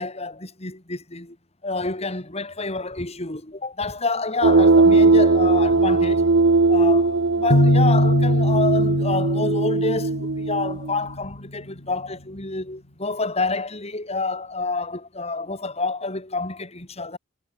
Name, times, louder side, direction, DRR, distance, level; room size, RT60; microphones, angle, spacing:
voice 1, 0.0-1.4 1.6-6.2 6.7-17.2, left 3 dB, 35° left, 3.6 m, -28 dB
sound 1, 4.4-10.9, right 3 dB, 80° right, 0.9 m, -19 dB
sound 2, 7.5-11.2, left 1 dB, 80° left, 3.3 m, -21 dB
head